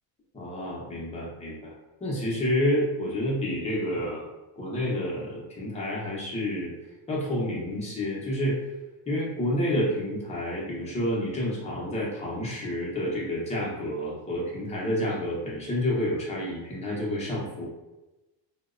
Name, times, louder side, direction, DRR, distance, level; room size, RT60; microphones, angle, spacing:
voice 1, 0.3-1.7 2.0-4.2 4.6-6.7 7.1-8.6 9.1-17.7, left 1 dB, 15° left, -5 dB, 0.5 m, -29 dB
2.7 x 2.0 x 2.4 m, 1.1 s
cardioid pair, 145°, 47 cm